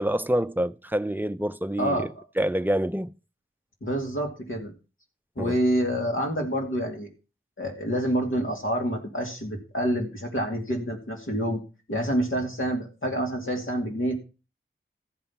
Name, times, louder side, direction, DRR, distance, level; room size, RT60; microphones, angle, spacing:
voice 1, 0.0-2.1 2.4-3.1 5.4-5.6, right 1 dB, 10° right, 0.5 m, -26 dB
voice 2, 1.8-2.2 3.8-4.7 5.4-7.1 7.6-11.6 11.9-14.2, equal, 70° left, 2.6 m, -27 dB
14.5 x 5.5 x 5.7 m
wide cardioid pair, 60°, 21 cm